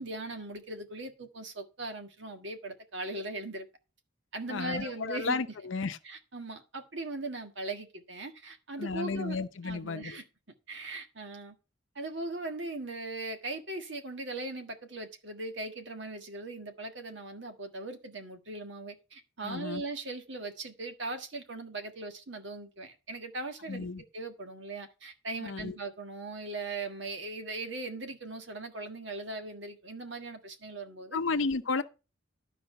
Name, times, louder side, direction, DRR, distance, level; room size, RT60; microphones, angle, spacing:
voice 1, 0.0-3.7 4.3-5.4 6.0-9.4 9.6-10.2 10.7-11.5 11.9-31.2, right 2 dB, 65° right, 1.6 m, -39 dB
voice 2, 4.5-6.0 8.8-10.2 19.4-19.8 23.7-24.0 25.4-25.7 31.1-31.8, left 4 dB, 75° left, 0.7 m, -33 dB
11.5 x 5.0 x 5.7 m
head